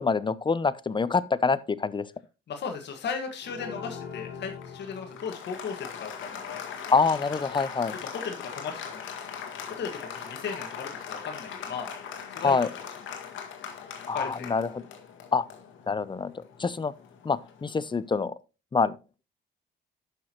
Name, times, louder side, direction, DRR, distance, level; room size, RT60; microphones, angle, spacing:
voice 1, 0.0-2.0 6.9-7.9 12.4-12.7 14.1-14.8 15.3-15.4 15.9-16.3 16.6-16.9 17.2-18.3 18.7-19.0, left 4 dB, 25° left, 0.7 m, -25 dB
voice 2, 2.5-6.6 8.0-9.0 9.8-11.9 12.3-12.6 14.1-14.5, left 5 dB, 60° left, 1.7 m, -36 dB
Applause, 3.4-17.8, left 7 dB, 75° left, 1.9 m, -40 dB
11.5 x 6.3 x 2.9 m
cardioid pair, 90°, 20 cm